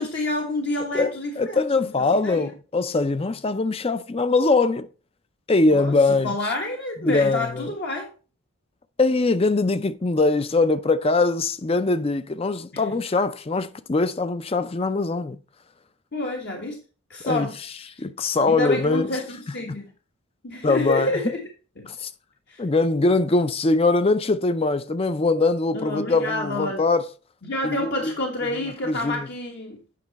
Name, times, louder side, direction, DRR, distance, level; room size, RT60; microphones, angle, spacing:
voice 1, 0.0-1.6 1.9-2.5 5.7-8.1 12.7-13.0 16.1-16.8 17.1-17.6 18.5-19.9 20.4-21.5 21.8-21.9 22.5-22.6 25.7-26.8 27.4-29.8, left 2 dB, 55° left, 1.3 m, -29 dB
voice 2, 0.9-4.9 5.5-6.4 7.0-7.7 9.0-15.4 17.2-17.5 18.0-19.2 20.6-21.1 21.9-22.1 22.6-27.1 27.6-28.1 28.5-29.3, left 3 dB, 30° left, 0.5 m, -22 dB
8.5 x 5.9 x 4.1 m
head